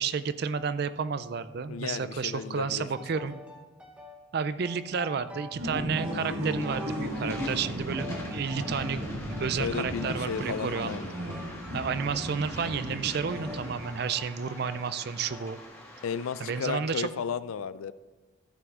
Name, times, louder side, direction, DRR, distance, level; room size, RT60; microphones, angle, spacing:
voice 1, 0.0-3.4 4.3-9.0 9.4-11.0 11.4-15.6 16.4-17.1, right 6 dB, 50° right, 13 dB, 0.4 m, -31 dB
voice 2, 1.7-2.9 3.1-3.3 9.6-11.1 16.0-17.9, left 6 dB, 85° left, 15 dB, 0.4 m, -34 dB
sound 1, 3.0-4.2 4.6-5.7 6.0-7.7 8.0-9.5 10.0-11.0 11.3-12.3 12.6-12.9 13.3-14.9 15.3-15.7, left 1 dB, 5° right, 0.7 m, -47 dB
sound 2, 5.5-14.1, equal, 80° right, 1.4 m, -35 dB
Waves surf, 6.6-16.6, left 1 dB, 15° left, 1.4 m, -46 dB
14.0 x 6.0 x 3.7 m, 1.2 s
head